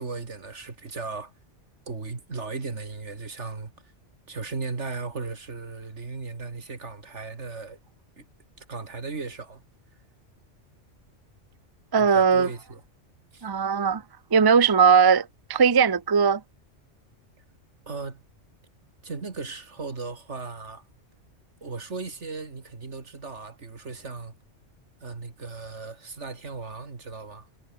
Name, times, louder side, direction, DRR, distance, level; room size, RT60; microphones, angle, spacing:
voice 1, 0.0-1.3 1.9-3.7 4.3-7.8 8.2-8.3 8.6-9.6 12.0-12.8 13.3-13.4 17.9-18.2 19.0-20.8 21.6-24.3 25.0-27.5, right 4 dB, 70° right, 2.7 m, -36 dB
voice 2, 11.9-12.5 13.4-14.0 14.3-16.4, right 6 dB, 30° right, 0.5 m, -19 dB
omnidirectional pair, 1.3 m